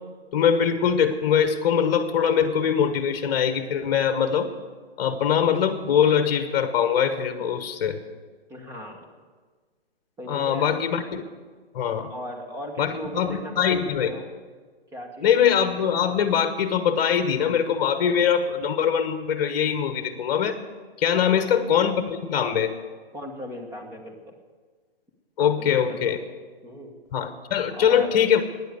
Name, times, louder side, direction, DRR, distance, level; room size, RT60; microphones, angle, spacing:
voice 1, 0.3-4.5 5.0-8.0 10.3-11.2 11.7-12.1 12.8-14.1 15.2-20.6 21.0-22.7 25.4-26.2 27.1-28.4, left 8 dB, 40° left, 9 dB, 1.2 m, -22 dB
voice 2, 8.5-9.0 10.2-10.8 12.1-14.3 14.9-15.3 21.1-21.4 23.1-24.3 25.4-26.2 26.6-27.0 27.7-28.2, equal, 10° right, 2 dB, 1.4 m, -38 dB
12.5 x 9.9 x 8.1 m, 1.5 s
hypercardioid pair, 150°, 31 cm